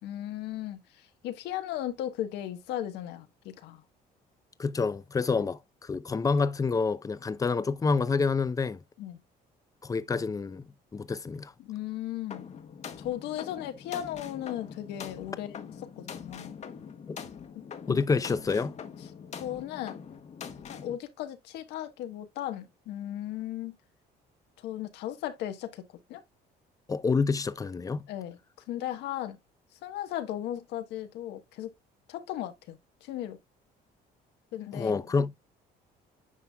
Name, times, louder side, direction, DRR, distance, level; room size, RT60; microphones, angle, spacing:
voice 1, 0.0-3.8 5.3-5.5 9.0-9.2 11.6-12.5 13.0-16.6 17.9-18.0 19.3-20.0 20.7-23.8 24.6-25.8 26.1-26.2 28.1-28.4 28.7-29.4 29.8-31.7 32.1-33.4 34.5-35.0, left 12 dB, 85° left, 1.3 m, -36 dB
voice 2, 4.6-8.8 9.8-10.6 10.9-11.5 17.1-17.2 17.9-18.7 26.9-28.0 34.7-35.3, left 4 dB, 20° left, 0.6 m, -28 dB
sound 1, 12.3-20.9, left 7 dB, 40° left, 1.2 m, -43 dB
9.8 x 5.3 x 2.3 m
cardioid pair, 110°, 17 cm